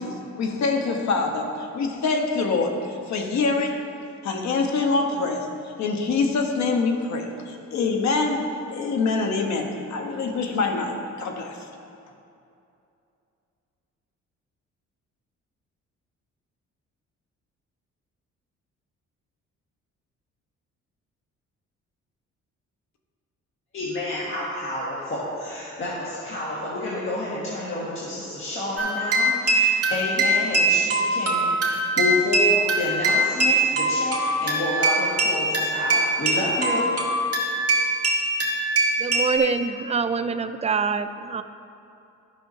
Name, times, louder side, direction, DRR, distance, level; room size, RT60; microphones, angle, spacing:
voice 1, 0.0-3.8 4.2-11.7, left 4 dB, 65° left, 3 dB, 1.1 m, -25 dB
voice 2, 23.7-36.9, left 1 dB, 45° left, -8 dB, 1.7 m, -29 dB
sound 1, 28.8-39.4, right 2 dB, 50° right, 1.9 m, -22 dB
voice 3, 39.0-41.4, right 5 dB, 20° right, 10 dB, 0.4 m, -25 dB
13.0 x 6.1 x 2.8 m, 2.7 s
cardioid pair, 90°, 30 cm